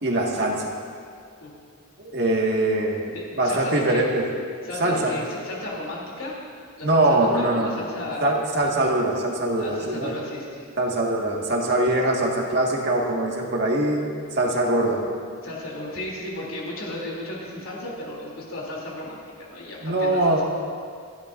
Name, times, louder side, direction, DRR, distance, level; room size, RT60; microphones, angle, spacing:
voice 1, 0.0-0.7 2.0-3.0 3.4-4.3 4.8-5.1 6.8-7.7 8.2-10.1 10.8-14.0 14.3-15.0 19.8-20.4, right 1 dB, 55° right, -1 dB, 1.8 m, -22 dB
voice 2, 3.1-4.0 4.6-6.4 6.8-8.3 9.6-10.7 15.4-20.4, left 1 dB, 80° left, -4 dB, 3.1 m, -34 dB
27.5 x 10.5 x 2.6 m, 2.2 s
head